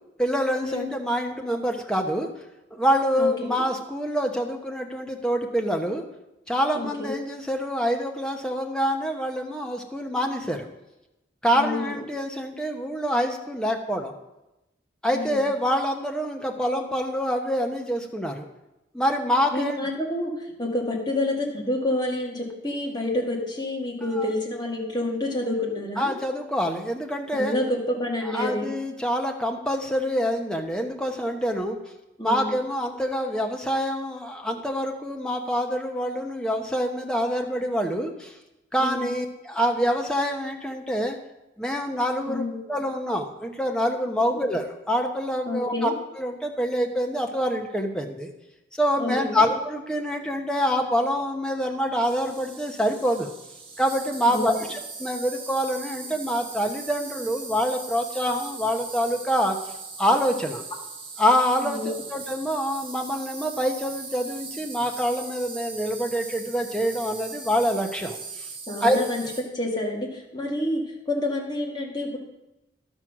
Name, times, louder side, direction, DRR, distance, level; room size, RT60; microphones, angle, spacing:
voice 1, 0.2-2.3 2.7-6.0 6.5-10.7 11.4-14.1 15.0-18.5 18.9-19.8 24.2-24.3 26.0-27.6 28.2-31.8 32.2-38.3 38.7-41.2 41.6-48.3 48.8-53.3 53.8-59.6 60.0-60.6 61.2-68.5 68.8-69.0, equal, 5° left, 2 dB, 0.9 m, -26 dB
voice 2, 6.7-7.2 11.5-12.0 15.1-15.5 19.5-26.2 27.3-28.7 32.2-32.5 38.8-39.1 42.3-42.6 44.2-44.5 45.5-45.9 49.0-49.4 54.3-54.5 61.6-61.9 68.7-69.2 69.5-72.2, left 1 dB, 20° left, -2 dB, 2.0 m, -28 dB
Insect, 52.0-69.4, right 4 dB, 30° right, 1.3 m, -39 dB
11.5 x 6.2 x 6.0 m, 0.95 s
head